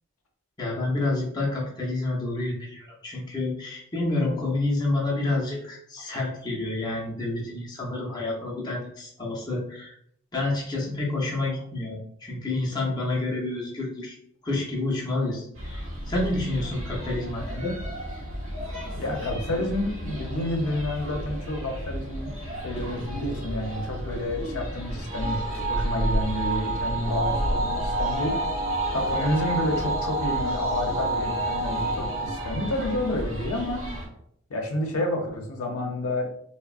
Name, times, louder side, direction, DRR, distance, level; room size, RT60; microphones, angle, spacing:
voice 1, 0.6-9.9 10.3-14.2 14.4-17.8, left 2 dB, 20° left, -4 dB, 0.5 m, -29 dB
sound 1, 15.5-34.1, equal, 70° right, 0.9 m, -33 dB
voice 2, 19.0-22.3 22.6-28.4 28.9-33.9 34.5-36.3, left 1 dB, 85° left, 2 dB, 0.5 m, -29 dB
sound 2, 25.1-33.7, right 2 dB, 45° right, 0.5 m, -29 dB
3.3 x 2.0 x 2.3 m, 0.70 s
head